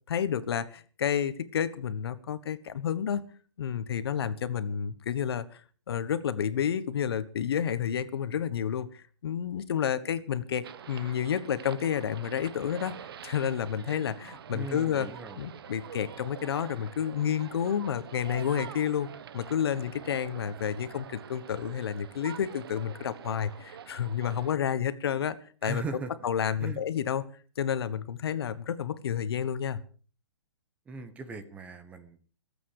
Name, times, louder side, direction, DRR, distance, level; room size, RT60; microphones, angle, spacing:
voice 1, 0.1-3.2 3.6-5.6 5.9-13.0 13.2-15.1 15.4-19.1 19.3-25.8 26.2-27.2 27.6-29.8, left 8 dB, 60° left, 13 dB, 1.4 m, -30 dB
sound 1, 10.6-24.6, right 8 dB, 60° right, 1.0 m, -46 dB
voice 2, 14.5-15.5 25.6-26.8 30.9-32.2, right 3 dB, 10° right, 10 dB, 0.9 m, -39 dB
26.0 x 8.7 x 4.9 m, 0.40 s
hypercardioid pair, 160°, 14 cm